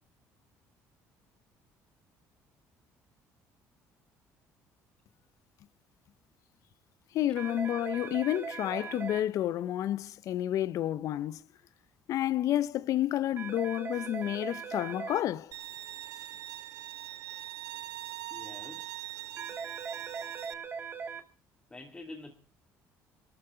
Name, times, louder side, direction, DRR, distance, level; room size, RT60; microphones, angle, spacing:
voice 1, 7.1-11.4 12.1-15.5, left 12 dB, 65° left, 0.7 m, -30 dB
sound 1, 7.4-9.2 13.4-15.2 19.4-21.2, right 6 dB, 35° right, 2.4 m, -39 dB
Bowed string instrument, 15.5-20.5, right 14 dB, 80° right, 1.2 m, -42 dB
voice 2, 18.3-19.0 21.7-22.3, left 2 dB, 15° left, 2.7 m, -46 dB
21.5 x 14.0 x 3.9 m
cardioid pair, 110°, 6 cm